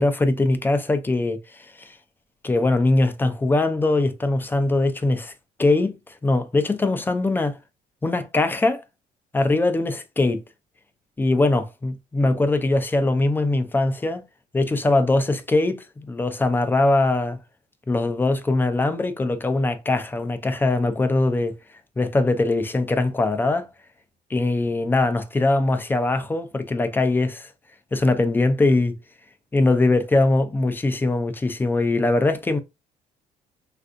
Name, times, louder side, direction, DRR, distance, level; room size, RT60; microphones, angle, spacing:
voice 1, 0.0-1.9 2.4-5.3 5.6-5.9 6.2-7.6 8.0-8.8 9.3-10.4 11.2-14.2 14.5-17.4 17.9-21.5 22.0-23.7 24.3-27.5 27.9-28.9 29.5-32.6, left 2 dB, 10° left, 0.4 m, -21 dB
3.3 x 2.5 x 2.5 m
cardioid pair, 110°, 17 cm